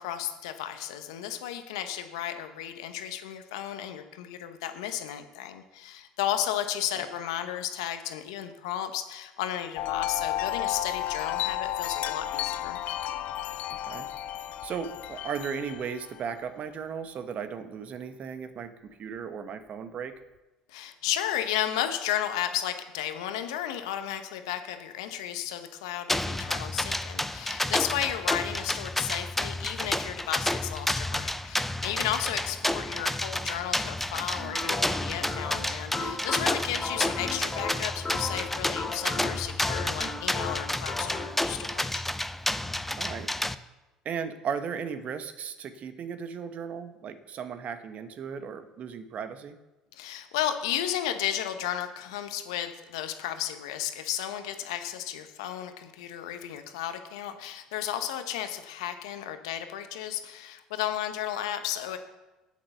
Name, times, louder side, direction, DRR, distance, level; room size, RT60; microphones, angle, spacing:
voice 1, 0.0-12.8 20.7-42.0 49.9-62.0, left 11 dB, 80° left, 8 dB, 1.0 m, -33 dB
Wind chime, 9.8-16.3, left 12 dB, 60° left, 0.5 m, -33 dB
voice 2, 14.6-18.7 19.0-20.1 43.0-43.3 44.0-49.6, right 7 dB, 50° right, 9 dB, 1.2 m, -36 dB
sound 1, 26.1-43.5, left 1 dB, 5° left, 0.6 m, -30 dB
sound 2, 34.4-41.4, left 3 dB, 25° left, 2.6 m, -36 dB
8.5 x 8.2 x 6.9 m, 1.1 s
hypercardioid pair, 65°, 3 cm